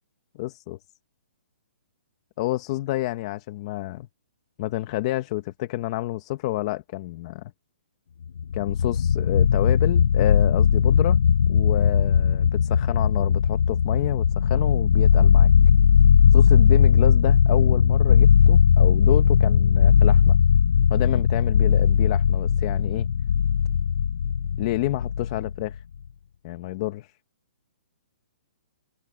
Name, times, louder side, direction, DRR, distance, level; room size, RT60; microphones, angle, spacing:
voice 1, 0.3-0.8 2.4-4.1 4.6-7.5 8.5-11.2 11.5-15.5 16.3-20.4 20.9-23.1 24.6-25.8 26.4-27.2, left 17 dB, 25° left, 1.0 m, -29 dB
sound 1, 8.4-25.7, left 7 dB, 75° left, 0.4 m, -18 dB
open air
hypercardioid pair, 170°, 7 cm